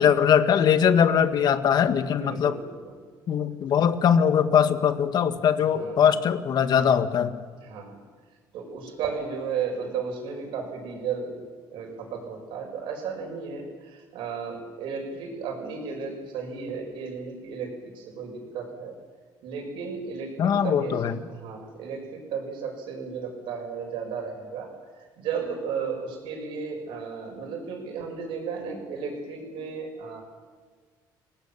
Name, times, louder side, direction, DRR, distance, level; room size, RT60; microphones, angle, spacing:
voice 1, 0.0-2.6 3.3-7.4 20.4-21.2, left 8 dB, 55° left, 9 dB, 1.9 m, -21 dB
voice 2, 2.0-3.0 5.7-6.1 7.6-8.0 8.5-11.4 11.7-18.9 19.4-30.2, right 5 dB, 75° right, 2 dB, 7.1 m, -34 dB
30.0 x 19.0 x 7.5 m, 1.5 s
cardioid pair, 110°, 8 cm